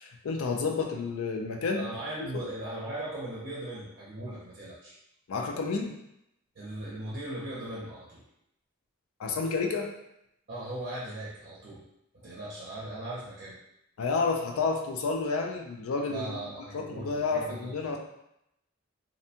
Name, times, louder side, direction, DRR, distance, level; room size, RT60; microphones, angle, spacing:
voice 1, 0.0-1.9 2.3-2.4 5.3-6.0 9.2-9.9 14.0-16.4 16.7-18.0, left 4 dB, 80° left, 2 dB, 0.4 m, -30 dB
voice 2, 1.8-5.0 6.6-8.2 10.5-11.8 12.2-13.6 16.1-18.0, right 1 dB, 45° right, -6 dB, 0.5 m, -38 dB
2.6 x 2.1 x 2.7 m, 0.81 s
head